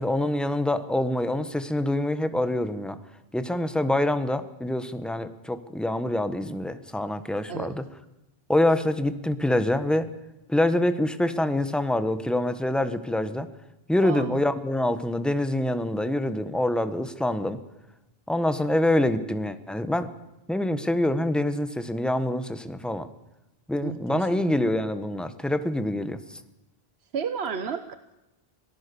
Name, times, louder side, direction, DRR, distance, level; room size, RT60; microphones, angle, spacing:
voice 1, 0.0-3.0 3.3-7.8 8.5-10.1 10.5-13.5 13.9-17.6 18.3-20.1 20.5-23.1 23.7-26.2, left 1 dB, ahead, 10 dB, 1.3 m, -25 dB
voice 2, 14.0-14.4 23.8-24.5 27.1-28.0, right 6 dB, 85° right, 11 dB, 1.3 m, -32 dB
26.0 x 18.5 x 7.0 m, 0.94 s
omnidirectional pair, 1.0 m